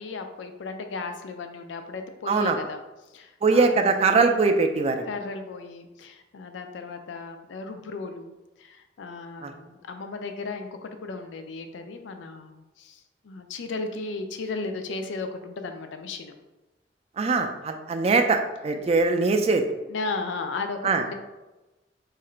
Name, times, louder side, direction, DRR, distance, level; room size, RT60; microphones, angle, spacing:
voice 1, 0.0-2.8 3.1-3.7 5.1-8.3 8.6-16.3 19.9-21.1, left 3 dB, 80° left, 7 dB, 0.4 m, -35 dB
voice 2, 2.3-2.6 3.4-5.0 9.4-9.5 17.2-19.6 20.8-21.0, right 4 dB, 35° right, 5 dB, 0.3 m, -22 dB
2.8 x 2.4 x 4.3 m, 1.1 s
head